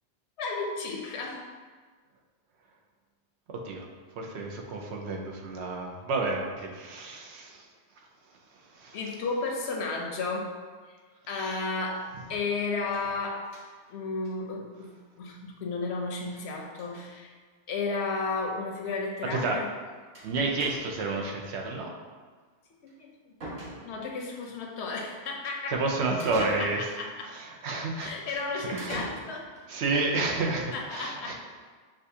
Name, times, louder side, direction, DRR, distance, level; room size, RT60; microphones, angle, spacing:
voice 1, 0.4-1.5 8.9-10.5 10.9-11.0 11.3-13.5 13.9-17.3 17.7-19.7 22.8-23.4 23.8-25.8 26.4-27.3 28.0-29.5 30.7-31.3, left 3 dB, 75° left, 1 dB, 0.9 m, -33 dB
voice 2, 3.5-3.9 4.2-7.7 8.7-9.0 19.3-19.6 20.2-21.9 25.7-26.9 27.3-28.1 28.7-29.0 29.7-31.3, right 3 dB, 80° right, 0 dB, 0.9 m, -30 dB
sound 1, 12.9-13.9 14.2-14.3 14.6-14.7 14.9-15.0 16.2-16.4 16.7-17.1 17.9-18.0 18.3-18.4 20.1-20.3 20.6-21.1 22.9-23.0 23.4-24.2 26.2-27.1 28.8-29.7, right 1 dB, 55° right, 1.5 m, -41 dB
6.4 x 2.5 x 2.7 m, 1.5 s
omnidirectional pair, 1.1 m